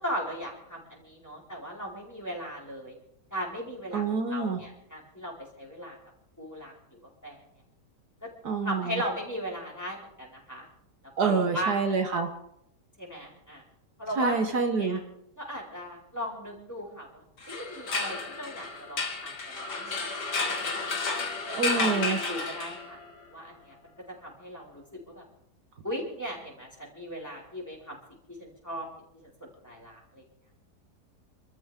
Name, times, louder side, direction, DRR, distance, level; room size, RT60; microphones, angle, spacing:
voice 1, 0.0-3.0 3.3-4.0 4.3-6.0 6.4-6.7 7.0-7.4 8.2-8.3 8.6-10.7 11.2-11.8 13.0-13.6 14.0-14.4 14.8-15.0 15.4-20.7 21.4-23.0 23.3-23.8 24.2-25.2 25.8-28.0 28.4-28.9 29.1-30.2, equal, 10° left, -4 dB, 4.8 m, -37 dB
voice 2, 3.9-4.6 8.4-9.0 11.2-12.3 14.2-15.0 21.6-22.2, right 4 dB, 65° right, 5 dB, 1.6 m, -27 dB
sound 1, 17.4-23.1, left 3 dB, 70° left, 2.7 m, -32 dB
29.0 x 13.5 x 3.6 m, 0.77 s
omnidirectional pair, 1.9 m